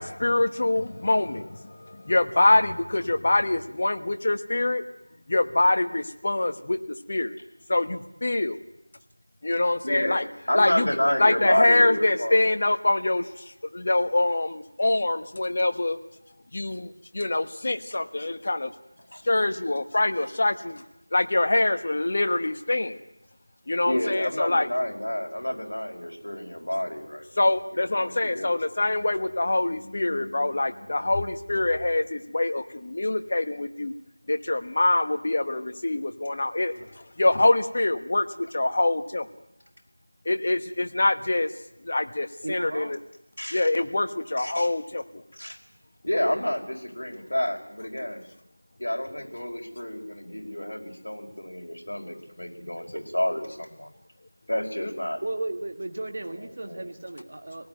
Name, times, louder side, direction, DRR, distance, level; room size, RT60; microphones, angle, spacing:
voice 1, 0.0-4.8 5.3-6.8 7.1-7.3 7.7-8.6 9.4-10.3 10.5-10.9 11.2-13.2 13.7-16.0 16.5-18.7 19.2-20.8 21.1-23.0 23.7-24.7 27.4-33.9 34.3-36.7 37.2-39.2 40.2-41.5 41.8-43.0 43.5-45.0 54.8-54.9, left 2 dB, 30° left, 9 dB, 1.3 m, -24 dB
voice 2, 9.8-10.2 10.5-12.5 19.1-19.2 23.8-27.3 28.0-28.7 43.4-43.7 44.4-44.7 45.3-45.6 46.0-48.2 48.8-53.9 54.5-55.2 56.2-56.9, left 1 dB, 65° left, 1 dB, 5.3 m, -29 dB
voice 3, 42.4-43.0 55.2-57.7, right 2 dB, 35° right, 6 dB, 1.8 m, -34 dB
26.0 x 18.0 x 9.3 m, 0.87 s
figure-of-eight pair, 175°, 0 cm